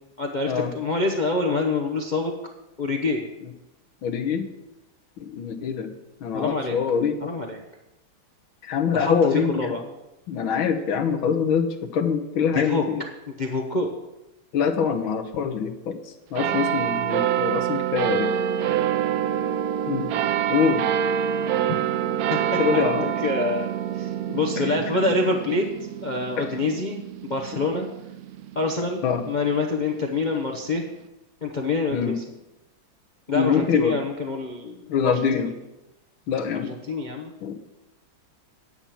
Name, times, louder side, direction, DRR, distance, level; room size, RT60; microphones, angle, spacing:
voice 1, 0.2-2.3 2.8-3.3 6.3-6.8 7.2-7.6 8.9-9.9 12.3-12.9 13.3-13.9 22.3-25.7 26.0-27.9 28.5-30.8 31.4-32.2 33.3-35.5 36.6-37.3, left 3 dB, 40° left, 1 dB, 0.7 m, -26 dB
voice 2, 4.0-4.5 5.2-5.9 6.2-7.3 8.6-9.7 10.3-13.0 14.5-16.0 16.3-18.3 19.9-20.1 20.5-20.8 22.6-23.1 24.6-24.7 29.0-29.2 31.9-32.1 33.4-34.0 34.9-35.5 36.3-36.7 37.4-37.6, left 6 dB, 85° left, 6 dB, 1.9 m, -24 dB
sound 1, 16.4-29.2 29.9-30.0, right 9 dB, 85° right, 0.8 m, -26 dB
9.7 x 8.5 x 6.0 m, 0.97 s
omnidirectional pair, 2.2 m